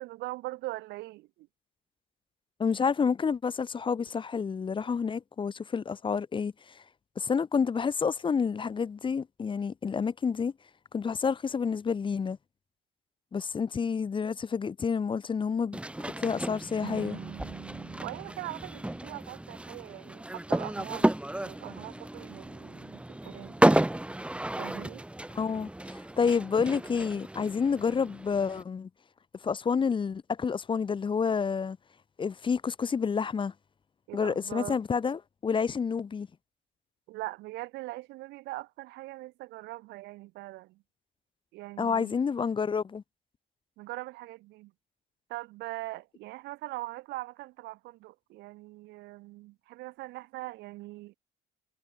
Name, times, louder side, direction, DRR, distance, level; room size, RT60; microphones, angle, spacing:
voice 1, 0.0-1.5 18.0-21.1 21.4-23.6 24.6-25.0 34.1-34.8 37.1-40.8 41.5-42.2 43.8-44.7 45.3-51.1, right 20 dB, 90° right, 2.8 m, -41 dB
voice 2, 2.6-6.5 7.2-10.5 10.9-12.4 13.3-15.8 16.2-17.2 25.3-28.9 29.4-31.8 32.2-33.5 34.1-36.3 41.8-43.0, left 6 dB, 30° left, 1.1 m, -29 dB
sound 1, 15.7-28.6, right 1 dB, 5° right, 2.0 m, -32 dB
sound 2, 16.8-19.9, right 13 dB, 65° right, 1.6 m, -46 dB
cardioid pair, 110°, 17 cm